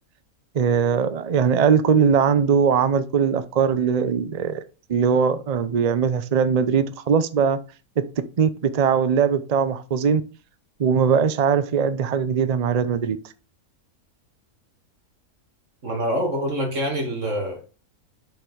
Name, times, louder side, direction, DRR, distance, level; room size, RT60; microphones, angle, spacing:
voice 1, 0.5-4.6 4.9-7.6 8.0-10.2 10.8-13.2, right 6 dB, 65° right, 0.3 m, -20 dB
voice 2, 15.8-17.6, equal, 50° right, 2.6 m, -25 dB
7.5 x 5.4 x 4.6 m
omnidirectional pair, 1.7 m